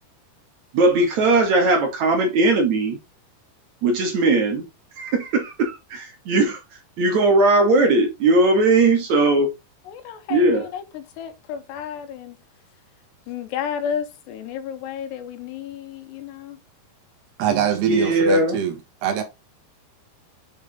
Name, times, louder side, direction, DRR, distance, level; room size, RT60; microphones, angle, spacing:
voice 1, 0.7-3.0 3.8-4.6 5.0-6.6 7.0-9.5 10.3-10.7 17.5-18.6, right 2 dB, 50° right, 3.1 m, -19 dB
voice 2, 9.9-12.4 13.3-16.6, left 8 dB, 85° left, 3.6 m, -32 dB
voice 3, 17.4-19.2, right 9 dB, 75° right, 3.8 m, -24 dB
8.6 x 5.5 x 3.8 m
omnidirectional pair, 4.8 m